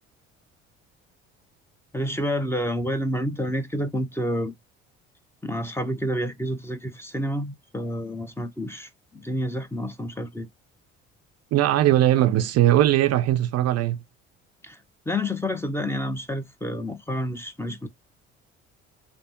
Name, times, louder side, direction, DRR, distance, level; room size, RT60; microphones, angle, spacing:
voice 1, 1.9-4.5 5.4-10.5 14.6-14.8 15.1-17.9, equal, 10° left, 0.6 m, -29 dB
voice 2, 11.5-14.0, right 13 dB, 55° right, 0.5 m, -20 dB
3.3 x 2.0 x 2.8 m
hypercardioid pair, 65°, 32 cm